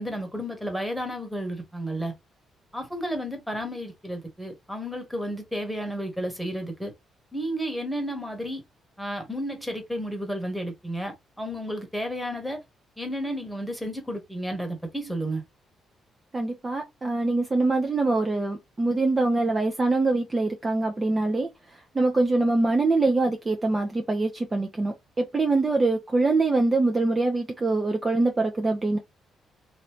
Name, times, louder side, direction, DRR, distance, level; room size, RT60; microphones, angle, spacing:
voice 1, 0.0-2.1 2.7-6.9 7.3-8.6 9.0-12.6 13.0-15.4, equal, ahead, 1.4 m, -32 dB
voice 2, 16.3-21.5 21.9-29.0, right 2 dB, 25° right, 0.7 m, -24 dB
3.1 x 2.7 x 2.9 m
cardioid pair, 90°, 0 cm